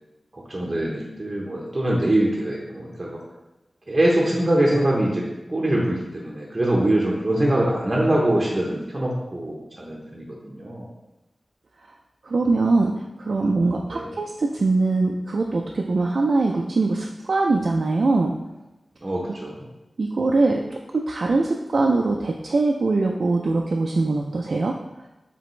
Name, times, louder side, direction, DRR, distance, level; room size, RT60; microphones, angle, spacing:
voice 1, 0.3-3.2 3.9-5.2 5.5-10.9 13.9-14.1 19.0-19.7, right 1 dB, 30° right, -3 dB, 0.9 m, -23 dB
voice 2, 12.2-18.3 20.0-20.6 20.9-24.8, right 3 dB, 65° right, 0 dB, 0.3 m, -22 dB
4.9 x 3.4 x 3.1 m, 1.0 s
wide cardioid pair, 90°, 0 cm